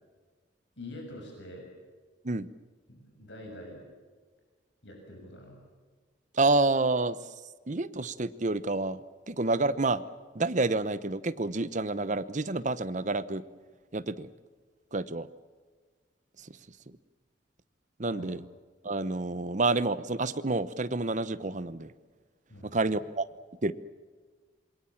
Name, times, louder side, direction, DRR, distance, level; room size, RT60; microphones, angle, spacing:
voice 1, 0.8-1.7 2.9-3.8 4.8-5.6 18.1-18.3 22.5-23.0, left 1 dB, 75° left, 1 dB, 7.0 m, -45 dB
voice 2, 6.3-7.2 7.7-9.0 9.3-10.0 10.3-13.4 13.9-14.3 14.9-15.3 16.4-16.6 18.0-18.4 18.8-21.9 22.6-23.3 23.6-23.7, right 3 dB, 40° right, 15 dB, 0.9 m, -28 dB
27.0 x 22.0 x 7.3 m, 1.5 s
head